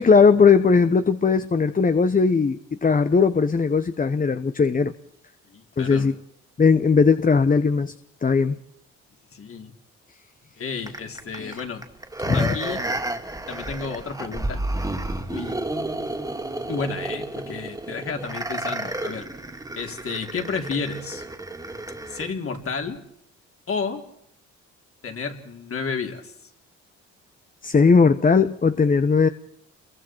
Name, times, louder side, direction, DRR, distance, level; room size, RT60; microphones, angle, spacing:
voice 1, 0.0-4.9 5.8-6.1 6.6-7.9 8.2-8.5 11.4-11.6 12.3-12.6 27.6-29.3, left 5 dB, 30° left, 1.0 m, -18 dB
voice 2, 5.5-6.1 9.3-9.7 10.6-11.9 12.3-12.8 13.5-14.7 15.1-15.6 16.6-19.3 19.7-21.2 22.1-23.0 23.7-24.0 25.0-26.3, left 5 dB, 45° left, 3.7 m, -31 dB
sound 1, 10.9-22.3 22.8-22.9, right 1 dB, 10° right, 2.4 m, -31 dB
29.0 x 23.0 x 4.6 m
cardioid pair, 90°, 30 cm